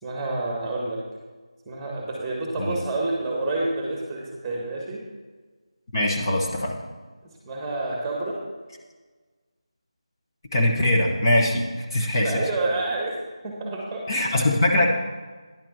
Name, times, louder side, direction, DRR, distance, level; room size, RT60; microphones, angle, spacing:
voice 1, 0.0-1.0 1.6-5.0 7.2-8.4 12.2-13.2 13.4-14.0, right 2 dB, 5° right, -2 dB, 1.7 m, -28 dB
voice 2, 5.9-6.8 10.5-12.4 14.1-14.9, left 1 dB, 35° left, -1 dB, 1.4 m, -22 dB
10.5 x 7.2 x 6.0 m, 1.3 s
figure-of-eight pair, 165°, 3 cm